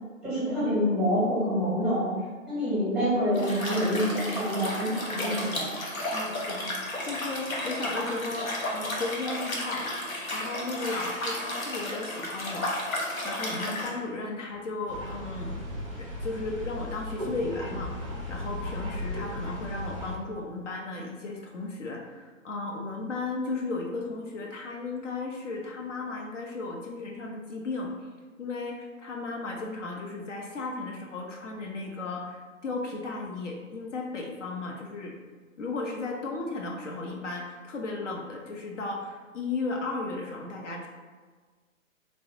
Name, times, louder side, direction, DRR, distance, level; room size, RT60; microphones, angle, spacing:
voice 1, 0.2-2.1 2.5-5.7, equal, ahead, -9 dB, 0.9 m, -26 dB
Liquid, 3.3-13.9, left 1 dB, 80° left, 0.9 m, -33 dB
voice 2, 6.1-12.7 13.2-15.5 15.9-27.9 28.4-35.2 35.6-40.9, left 3 dB, 60° left, 0 dB, 0.6 m, -35 dB
sound 1, 14.9-20.2, left 1 dB, 25° right, 0.4 m, -36 dB
3.1 x 2.6 x 2.9 m, 1.4 s
figure-of-eight pair, 130°, 40 cm